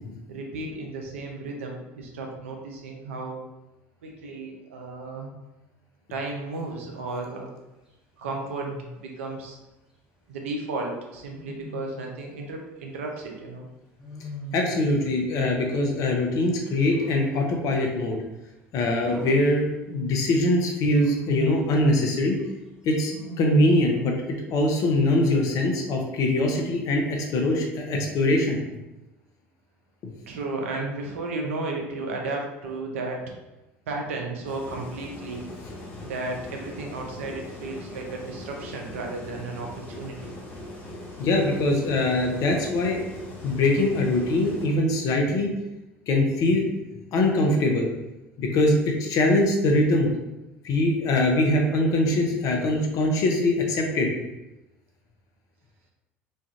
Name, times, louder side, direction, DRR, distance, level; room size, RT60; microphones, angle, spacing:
voice 1, 0.3-3.4 4.0-5.3 6.1-7.5 8.2-9.6 10.3-13.7 30.3-33.2 33.9-35.5 36.0-40.3, right 3 dB, 80° right, 1 dB, 0.6 m, -34 dB
Wild animals, 6.7-7.0 8.2-9.0 11.3-12.2 14.0-15.1 16.5-17.5 19.0-20.2 20.9-21.8 23.1-24.1, left 1 dB, 10° right, 1.0 m, -39 dB
voice 2, 14.5-18.2 18.7-22.4 22.8-24.1 24.5-28.6 30.0-30.1 41.2-43.0 43.4-45.5 46.1-46.7 47.1-47.9 48.4-50.1 50.6-54.3, left 1 dB, 55° left, 1 dB, 0.7 m, -22 dB
sound 1, 34.4-44.7, left 1 dB, 35° left, 1.3 m, -40 dB
3.2 x 2.4 x 2.7 m, 0.99 s
hypercardioid pair, 75°, 7 cm